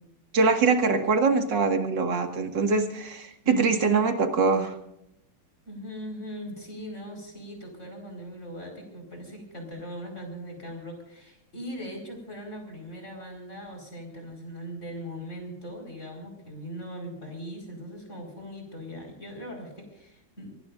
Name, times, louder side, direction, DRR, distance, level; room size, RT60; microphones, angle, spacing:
voice 1, 0.3-4.7, right 4 dB, 60° right, 5 dB, 2.5 m, -23 dB
voice 2, 3.4-3.8 5.6-20.6, equal, 35° left, 2 dB, 5.4 m, -40 dB
25.0 x 20.0 x 2.6 m, 0.79 s
omnidirectional pair, 2.3 m